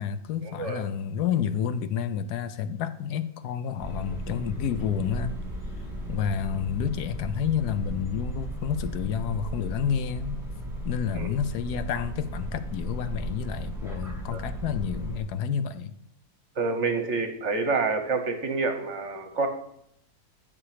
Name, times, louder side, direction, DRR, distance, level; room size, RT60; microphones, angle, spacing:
voice 1, 0.0-5.3 6.1-10.4 10.8-15.9, left 8 dB, 75° left, 13 dB, 1.1 m, -29 dB
sound 1, 3.8-15.2, right 1 dB, ahead, 1.8 m, -35 dB
voice 2, 16.6-19.5, right 4 dB, 55° right, 7 dB, 1.0 m, -27 dB
8.8 x 7.1 x 4.9 m, 0.74 s
omnidirectional pair, 1.7 m